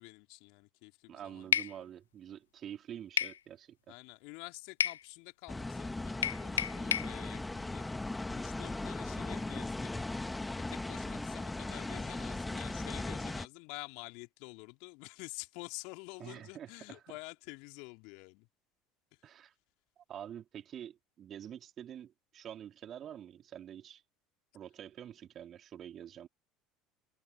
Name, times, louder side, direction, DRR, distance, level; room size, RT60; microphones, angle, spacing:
voice 1, 0.0-1.9 3.9-10.1 10.6-18.5 19.1-19.3, left 32 dB, 60° left, 3.5 m, -49 dB
voice 2, 1.1-3.8 16.2-17.0 19.2-19.5 20.0-24.0 24.5-26.3, right 10 dB, 40° right, 3.2 m, -47 dB
sound 1, 1.5-1.7 3.2-3.4 4.8-5.0 6.2-7.1, left 9 dB, 75° left, 0.5 m, -30 dB
sound 2, 5.5-13.5, left 2 dB, 10° left, 2.1 m, -38 dB
figure-of-eight pair, 65°, 0 cm